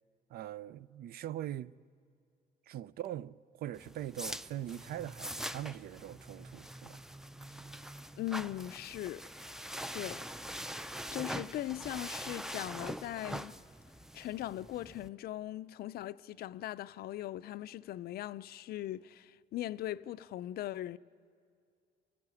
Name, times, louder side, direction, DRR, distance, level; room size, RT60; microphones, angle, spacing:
voice 1, 0.3-1.7 2.7-7.0, right 12 dB, 65° right, 0.5 m, -42 dB
sound 1, 3.7-15.1, equal, 5° right, 0.5 m, -43 dB
voice 2, 8.2-9.2 9.9-10.2 11.1-13.5 14.1-21.0, left 14 dB, 65° left, 0.5 m, -39 dB
27.5 x 13.5 x 9.7 m
cardioid pair, 115°, 17 cm